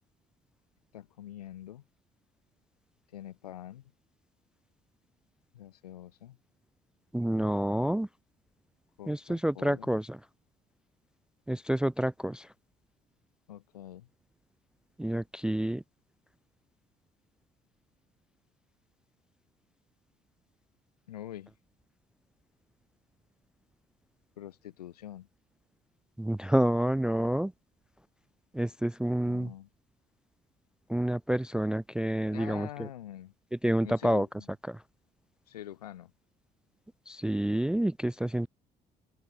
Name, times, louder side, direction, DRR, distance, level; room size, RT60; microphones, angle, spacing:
voice 1, 0.9-1.8 3.1-3.8 5.5-6.4 9.0-9.9 13.5-14.1 21.1-21.5 24.4-25.3 29.2-29.7 32.3-33.3 33.8-34.5 35.5-36.1, left 12 dB, 90° left, 1.0 m, -45 dB
voice 2, 7.1-8.1 9.1-10.2 11.5-12.5 15.0-15.8 26.2-27.5 28.5-29.5 30.9-32.7 33.6-34.3 34.7-34.8 37.1-38.5, right 1 dB, 5° right, 0.3 m, -28 dB
open air
hypercardioid pair, 55°, 19 cm